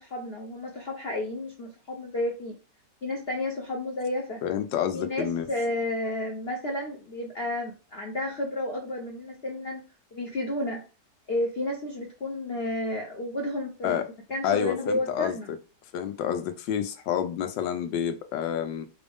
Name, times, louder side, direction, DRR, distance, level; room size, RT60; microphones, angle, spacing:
voice 1, 0.0-2.6 3.0-4.4 4.9-9.9 10.1-10.8 11.3-14.0 14.3-15.5, left 1 dB, 50° left, 0 dB, 0.8 m, -31 dB
voice 2, 4.4-5.5 13.8-14.1 14.4-15.4 15.9-18.9, left 9 dB, 85° left, 8 dB, 1.4 m, -29 dB
5.2 x 2.6 x 3.5 m, 0.32 s
omnidirectional pair, 1.9 m